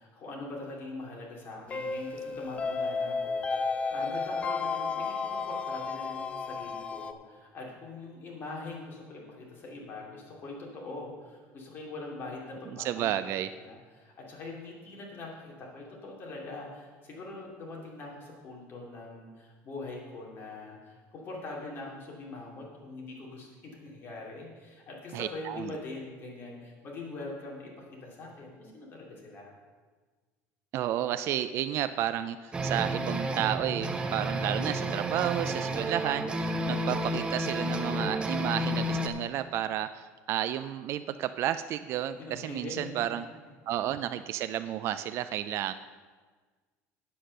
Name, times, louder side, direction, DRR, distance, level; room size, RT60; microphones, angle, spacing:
voice 1, 0.0-13.3 13.6-29.5 42.2-43.0, left 2 dB, 35° left, -2 dB, 2.6 m, -43 dB
sound 1, 1.7-7.1, left 4 dB, 20° left, 0.5 m, -32 dB
voice 2, 12.8-13.5 25.1-25.7 30.7-43.3 43.7-45.7, right 12 dB, 45° right, 11 dB, 0.3 m, -32 dB
sound 2, 32.5-39.1, right 1 dB, 15° right, 0.7 m, -31 dB
8.4 x 7.7 x 6.5 m, 1.4 s
cardioid pair, 150°, 6 cm